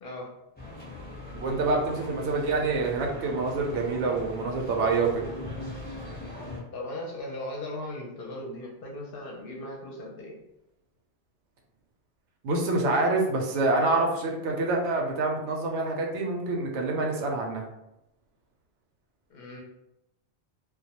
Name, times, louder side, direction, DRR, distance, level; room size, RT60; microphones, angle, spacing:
voice 1, 0.0-0.3 6.7-10.4 19.3-19.6, left 1 dB, 60° left, -1 dB, 0.7 m, -38 dB
sound 1, 0.6-6.6, left 1 dB, 10° left, 0.6 m, -40 dB
voice 2, 1.4-5.3 12.4-17.6, right 3 dB, 85° right, 1 dB, 0.9 m, -26 dB
2.2 x 2.1 x 2.8 m, 0.87 s
omnidirectional pair, 1.2 m